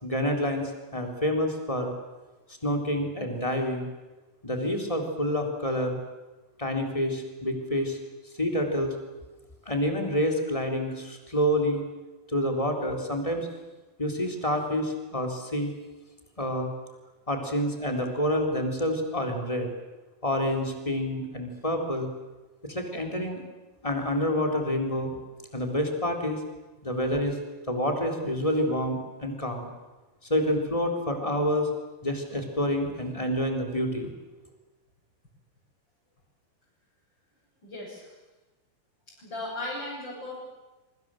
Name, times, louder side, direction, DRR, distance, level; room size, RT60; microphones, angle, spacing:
voice 1, 0.0-1.9 2.6-3.9 4.4-6.0 6.6-8.0 8.4-8.9 9.6-11.8 12.3-13.5 14.0-15.7 16.4-16.7 17.3-19.7 20.2-22.1 22.6-23.4 23.8-25.2 25.5-26.4 26.8-27.4 27.7-29.7 30.2-31.7 32.0-34.1, equal, 10° left, 3 dB, 3.4 m, -28 dB
voice 2, 37.6-38.2 39.1-40.4, left 2 dB, 30° left, -6 dB, 8.1 m, -37 dB
26.5 x 24.0 x 7.8 m, 1.1 s
omnidirectional pair, 4.2 m